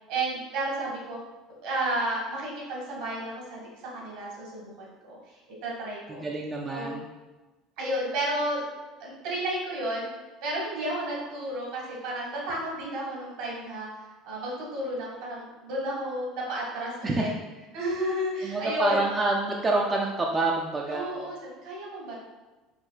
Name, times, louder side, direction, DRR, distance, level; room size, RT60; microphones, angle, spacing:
voice 1, 0.1-1.2 1.6-5.2 5.6-6.2 6.7-7.0 7.8-8.6 9.0-10.1 10.4-13.9 14.2-17.3 17.7-19.0 20.9-22.2, right 1 dB, 65° right, -3 dB, 1.4 m, -32 dB
voice 2, 6.1-7.1 17.0-17.3 18.4-21.2, right 2 dB, 25° right, -1 dB, 0.4 m, -27 dB
5.1 x 2.8 x 2.4 m, 1.2 s
figure-of-eight pair, 65°, 0 cm